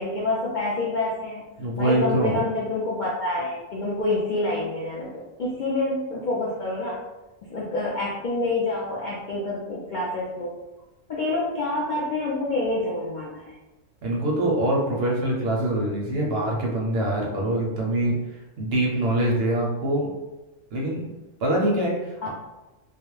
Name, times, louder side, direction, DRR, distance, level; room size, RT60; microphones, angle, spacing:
voice 1, 0.0-1.4 1.8-7.0 7.4-10.5 11.1-13.5 22.2-22.3, left 2 dB, 60° left, -6 dB, 0.5 m, -27 dB
voice 2, 1.6-2.4 14.0-18.2 18.6-20.1 20.7-21.1 21.4-22.3, right 1 dB, 65° right, -2 dB, 0.7 m, -24 dB
2.3 x 2.1 x 3.0 m, 1.0 s
omnidirectional pair, 1.3 m